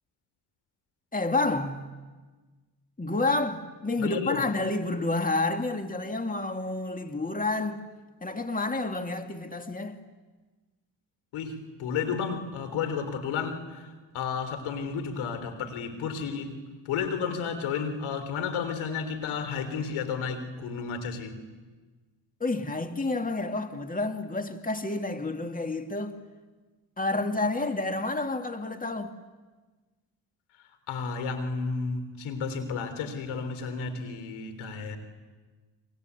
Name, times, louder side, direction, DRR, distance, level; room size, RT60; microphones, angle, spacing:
voice 1, 1.1-1.9 3.0-7.8 8.2-10.0 22.4-26.2 27.0-29.2, left 2 dB, 15° left, 2.3 m, -29 dB
voice 2, 4.0-4.4 11.3-16.6 16.9-21.4 30.9-35.0, left 5 dB, 80° left, 3.7 m, -32 dB
28.5 x 24.0 x 8.3 m
supercardioid pair, 55°, 48 cm